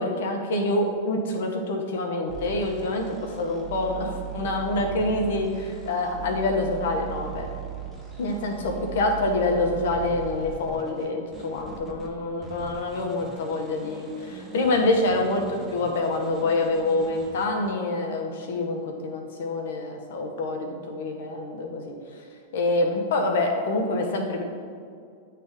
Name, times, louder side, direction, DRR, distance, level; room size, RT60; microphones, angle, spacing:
voice 1, 0.0-7.5 8.2-21.9 22.5-24.4, left 2 dB, 70° left, 2 dB, 0.9 m, -26 dB
sound 1, 2.3-12.1 12.4-17.5, right 7 dB, 15° right, 1.1 m, -39 dB
9.2 x 3.3 x 3.6 m, 2.3 s
hypercardioid pair, 100°, 0 cm